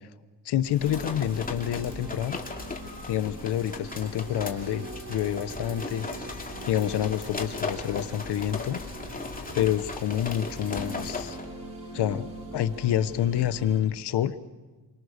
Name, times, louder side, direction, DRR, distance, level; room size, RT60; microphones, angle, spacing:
voice 1, 0.4-2.4 3.1-6.1 6.7-8.8 9.5-11.4 11.9-12.2 12.5-14.3, left 11 dB, 85° left, 13 dB, 1.1 m, -28 dB
sound 1, 0.6-11.5, left 3 dB, 20° left, 2.8 m, -37 dB
sound 2, 0.8-13.8, right 2 dB, 40° right, 5.0 m, -42 dB
29.5 x 24.0 x 6.6 m, 1.3 s
cardioid pair, 110°, 39 cm